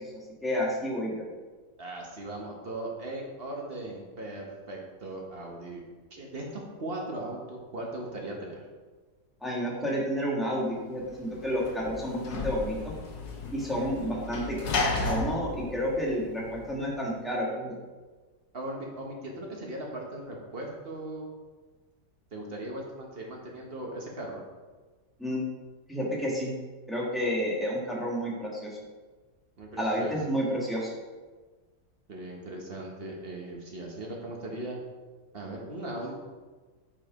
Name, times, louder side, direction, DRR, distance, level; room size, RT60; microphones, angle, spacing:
voice 1, 0.4-1.2 9.4-12.9 13.5-14.6 15.0-17.8 25.2-25.4 25.9-26.5 26.9-28.7 29.8-30.9, equal, ahead, -5 dB, 1.2 m, -30 dB
voice 2, 1.8-5.8 6.1-8.6 18.5-21.3 22.3-24.4 29.6-30.1 32.1-34.8 35.3-36.1, right 1 dB, 40° right, -1 dB, 1.1 m, -38 dB
Sliding door / Slam, 11.0-16.8, left 3 dB, 70° left, 1.5 m, -34 dB
6.0 x 4.6 x 4.7 m, 1.3 s
omnidirectional pair, 1.8 m